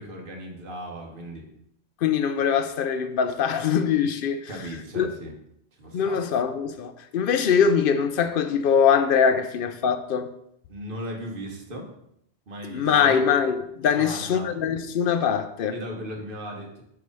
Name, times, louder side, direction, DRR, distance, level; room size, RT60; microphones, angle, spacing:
voice 1, 0.0-1.5 4.5-5.3 5.8-6.2 10.7-11.9 12.5-13.2 13.9-14.5 15.7-16.8, equal, 55° right, 1.4 m, -37 dB
voice 2, 2.0-4.4 4.9-5.1 5.9-10.3 12.7-15.7, left 7 dB, 65° left, 0.7 m, -22 dB
4.9 x 4.7 x 5.3 m
omnidirectional pair, 1.1 m